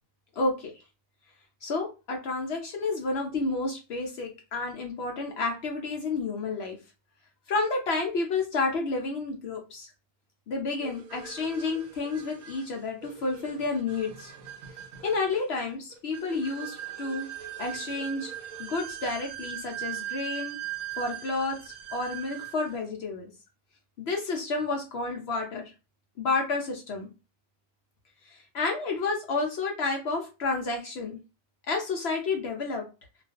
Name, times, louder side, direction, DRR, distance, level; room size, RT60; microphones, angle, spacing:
voice 1, 0.4-0.7 1.6-6.8 7.5-9.9 10.5-14.3 15.0-17.3 17.6-18.3 18.6-20.6 21.0-23.3 24.0-25.7 26.2-27.1 28.3-31.2 31.7-32.9, left 3 dB, 65° left, 2 dB, 0.7 m, -30 dB
sound 1, 10.8-22.8, right 12 dB, 75° right, 1.0 m, -40 dB
2.4 x 2.3 x 2.3 m, 0.29 s
omnidirectional pair, 1.5 m